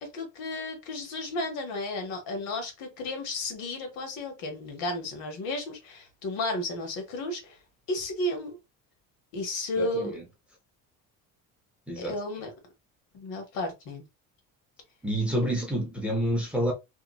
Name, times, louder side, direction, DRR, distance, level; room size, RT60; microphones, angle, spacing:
voice 1, 0.0-7.6 7.9-8.6 9.3-10.2 12.0-12.5 13.1-14.0, left 1 dB, 70° left, 1.3 m, -33 dB
voice 2, 9.8-10.2 11.9-12.2 15.0-16.7, equal, 5° right, 0.5 m, -28 dB
2.8 x 2.4 x 2.3 m
cardioid pair, 175°, 35 cm